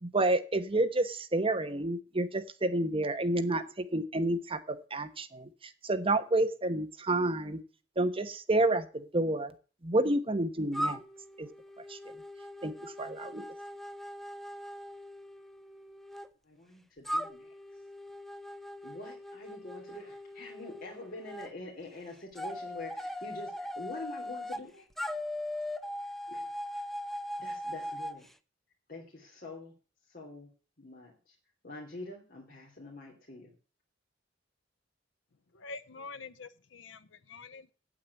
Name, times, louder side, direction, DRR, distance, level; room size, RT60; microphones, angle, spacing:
voice 1, 0.0-7.6 8.0-9.5 9.8-11.0 11.4-11.5 11.9-12.0 12.6-13.4, right 2 dB, 30° right, 1.1 m, -29 dB
sound 1, 10.7-16.3 17.1-21.5 22.4-24.6 25.0-28.2, equal, ahead, 0.6 m, -40 dB
voice 2, 16.4-17.5 18.8-24.9 26.3-26.5 27.4-28.3 28.9-29.7 30.1-30.5 30.8-31.4 31.6-33.5, left 2 dB, 50° left, 3.1 m, -45 dB
voice 3, 35.5-37.7, left 4 dB, 70° left, 0.6 m, -46 dB
9.0 x 8.6 x 8.3 m
head